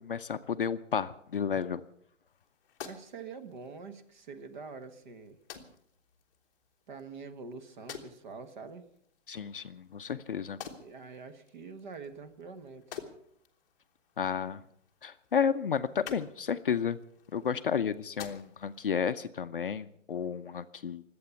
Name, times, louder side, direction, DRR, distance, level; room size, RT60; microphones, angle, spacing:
voice 1, 0.0-1.8 9.3-10.6 14.2-14.6 15.0-17.0 17.3-21.0, left 7 dB, 45° left, 10 dB, 0.6 m, -32 dB
sound 1, 2.3-18.9, left 8 dB, 15° left, 1.1 m, -51 dB
voice 2, 2.8-5.4 6.9-8.8 10.8-13.0, right 4 dB, 35° right, 9 dB, 1.4 m, -45 dB
23.5 x 8.7 x 6.9 m, 0.67 s
hypercardioid pair, 175°, 38 cm